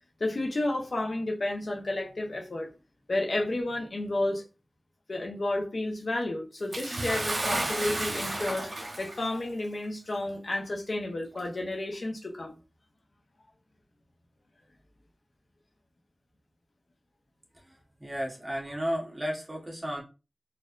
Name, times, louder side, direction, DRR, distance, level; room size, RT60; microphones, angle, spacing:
voice 1, 0.2-2.7 3.1-4.4 5.1-12.6, left 2 dB, 65° left, 0.9 m, -31 dB
Bathtub (filling or washing) / Splash splatter, 6.7-9.3 10.2-10.3 11.3-11.4, right 2 dB, 65° right, 0.9 m, -32 dB
voice 2, 17.7-20.0, equal, 30° right, 1.1 m, -34 dB
4.2 x 2.6 x 2.5 m
wide cardioid pair, 80°, 0 cm